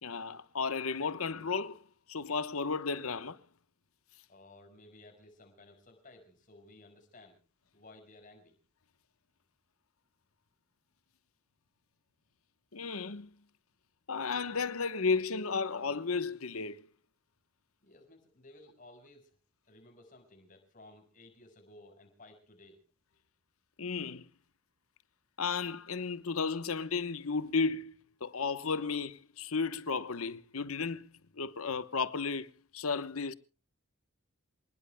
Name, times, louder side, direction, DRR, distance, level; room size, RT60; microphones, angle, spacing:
voice 1, 0.0-3.4 12.7-13.3 14.1-16.9 23.8-24.3 25.4-33.3, left 4 dB, 80° left, 1.0 m, -34 dB
voice 2, 4.3-7.4 7.7-8.6 17.8-19.4 19.7-22.8, left 2 dB, 40° left, 5.3 m, -56 dB
27.5 x 20.0 x 2.2 m
head